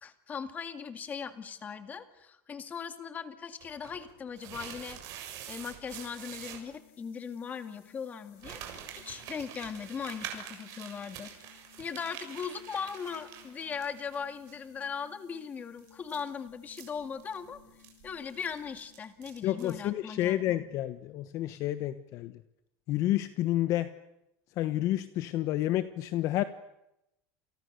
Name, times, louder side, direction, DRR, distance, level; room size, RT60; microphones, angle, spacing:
voice 1, 0.0-8.6 8.9-11.3 11.8-17.6 18.0-20.6, left 6 dB, 20° left, 9 dB, 2.2 m, -39 dB
sound 1, 3.6-6.6 8.4-14.2 14.5-14.6 15.8-19.8, right 10 dB, 50° right, 6.9 m, -46 dB
sound 2, 6.3-19.3, left 11 dB, 70° left, 6.0 m, -60 dB
voice 2, 19.4-22.3 22.9-23.9 24.6-26.4, left 14 dB, 45° left, 12 dB, 1.2 m, -30 dB
29.5 x 29.0 x 6.8 m, 0.86 s
cardioid pair, 165°, 8 cm